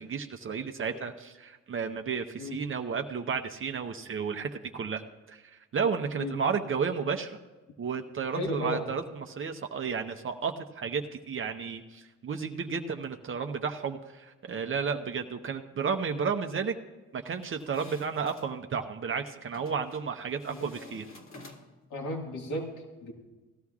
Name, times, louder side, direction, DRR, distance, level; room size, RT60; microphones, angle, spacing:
voice 1, 0.0-5.0 5.3-7.4 7.8-16.8 17.1-21.0, right 6 dB, 45° right, 5 dB, 0.8 m, -32 dB
voice 2, 8.3-8.9 20.5-20.7 21.9-22.7 23.0-23.1, equal, 75° left, 0 dB, 1.9 m, -34 dB
sound 1, 17.3-18.5 19.5-20.0 20.4-21.9, left 2 dB, 45° left, 1.9 m, -51 dB
17.5 x 13.0 x 2.4 m, 1.2 s
cardioid pair, 90°, 30 cm